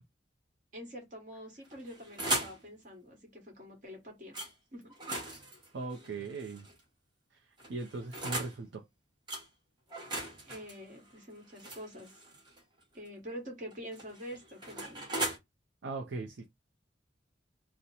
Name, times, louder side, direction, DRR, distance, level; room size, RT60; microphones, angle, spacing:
voice 1, 0.7-4.4 4.7-5.3 10.4-12.2 12.9-15.1, equal, 45° right, 1.2 m, -46 dB
sound 1, 1.6-2.6 4.3-4.5 4.9-6.8 7.6-8.6 9.3-9.5 9.9-12.6 13.7-15.4, right 1 dB, 25° right, 0.9 m, -38 dB
voice 2, 5.7-6.7 7.3-8.8 15.8-16.5, right 3 dB, 70° right, 0.5 m, -39 dB
2.9 x 2.0 x 3.9 m
head